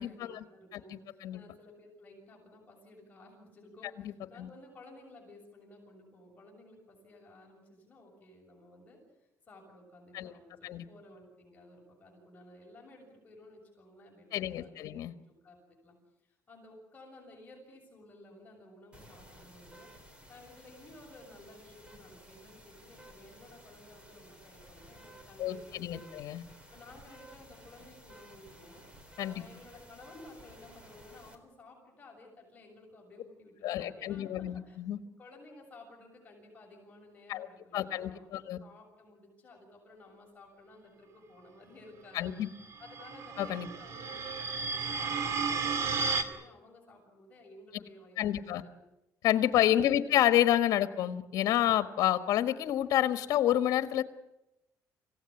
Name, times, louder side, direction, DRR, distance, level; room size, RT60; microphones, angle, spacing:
voice 1, 0.0-15.0 15.3-16.0 16.2-19.9 20.3-26.1 26.7-28.8 29.2-34.8 35.2-42.3 42.8-48.8 49.7-50.2, left 2 dB, 25° left, -2 dB, 7.0 m, -55 dB
voice 2, 14.3-15.1 25.4-26.4 29.2-29.4 33.6-35.0 37.3-37.5 37.7-38.6 42.1-42.5 43.4-43.7 48.2-48.6 49.2-54.0, left 12 dB, 75° left, 10 dB, 1.4 m, -29 dB
sound 1, 18.9-31.4, equal, 20° right, 3.7 m, -55 dB
sound 2, 42.6-46.2, right 5 dB, 50° right, 2.4 m, -33 dB
26.5 x 16.5 x 9.8 m, 0.93 s
cardioid pair, 150°, 6 cm